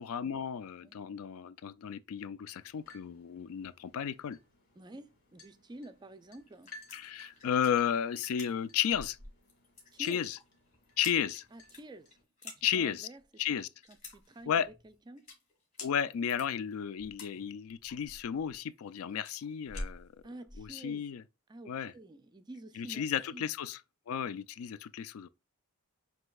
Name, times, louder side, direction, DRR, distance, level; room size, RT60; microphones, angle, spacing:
voice 1, 0.0-4.4 6.9-9.2 10.0-10.4 11.0-11.4 12.6-13.1 13.4-13.7 14.5-14.7 15.8-20.1 20.6-21.2 21.7-21.9 22.8-23.8 24.1-25.3, left 8 dB, 75° left, 0.3 m, -33 dB
sound 1, 2.5-12.2, left 2 dB, 50° left, 1.9 m, -58 dB
voice 2, 4.8-6.7 9.9-10.2 11.5-12.2 12.4-13.2 13.5-13.6 13.9-15.3 20.2-21.1 21.5-23.0 23.3-23.5, right 1 dB, 20° right, 0.3 m, -49 dB
sound 2, 6.4-20.7, left 2 dB, 35° left, 1.8 m, -49 dB
7.6 x 2.8 x 2.3 m
head